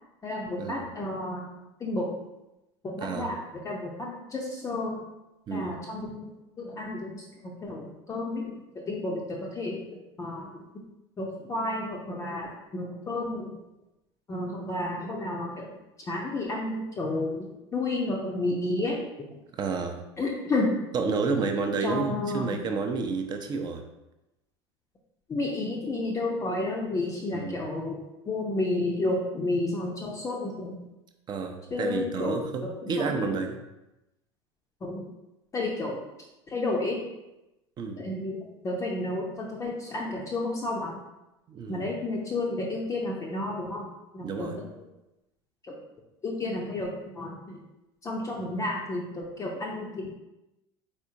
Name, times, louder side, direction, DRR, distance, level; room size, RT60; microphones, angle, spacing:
voice 1, 0.2-1.5 1.8-2.2 2.8-3.4 3.6-5.0 5.5-6.3 6.6-9.9 10.2-10.5 11.2-13.5 14.3-15.7 16.1-17.5 17.7-19.3 20.2-20.8 21.8-22.6 25.3-30.8 31.7-33.2 34.8-35.1 35.5-36.0 36.5-37.0 38.0-41.0 41.7-43.9 44.1-44.6 46.2-47.4 48.0-50.1, left 2 dB, 20° left, -2 dB, 0.6 m, -31 dB
voice 2, 3.0-3.3 5.5-5.8 19.5-20.0 20.9-23.8 27.3-27.6 31.3-33.6 37.8-38.0 41.5-41.8 44.2-44.6, right 4 dB, 30° right, 5 dB, 0.6 m, -30 dB
4.2 x 3.6 x 2.7 m, 0.96 s
figure-of-eight pair, 70°, 14 cm